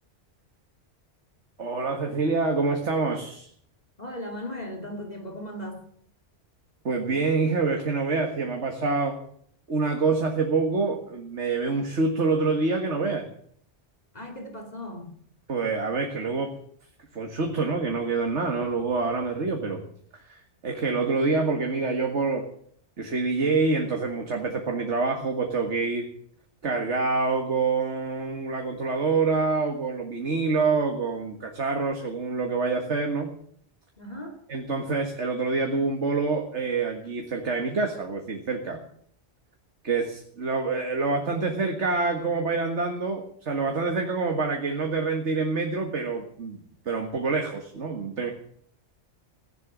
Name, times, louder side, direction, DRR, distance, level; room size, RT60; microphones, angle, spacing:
voice 1, 1.6-3.5 6.8-9.2 9.7-13.3 15.5-16.6 17.1-19.8 20.3-22.5 23.0-26.1 26.6-33.3 34.5-38.8 39.8-48.3, right 4 dB, 90° right, 3 dB, 2.1 m, -26 dB
voice 2, 4.0-5.8 14.1-15.1 34.0-34.4, left 1 dB, 35° left, 4 dB, 2.8 m, -37 dB
16.5 x 11.0 x 7.3 m, 0.62 s
omnidirectional pair, 1.2 m